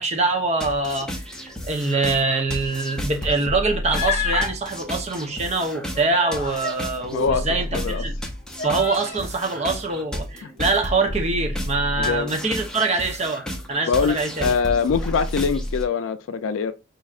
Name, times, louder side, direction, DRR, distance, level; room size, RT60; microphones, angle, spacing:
voice 1, 0.0-8.1 8.6-14.5, right 3 dB, 35° right, 0.7 m, -24 dB
sound 1, 0.6-15.8, equal, 5° left, 0.6 m, -32 dB
Human voice, 3.9-4.5 5.7-6.8 7.6-7.7 8.6-9.3, left 6 dB, 35° left, 0.7 m, -29 dB
voice 2, 7.1-7.5 7.7-8.0 10.4-10.5 12.0-12.3 13.9-16.7, left 5 dB, 80° left, 0.4 m, -23 dB
5.3 x 2.7 x 2.4 m
head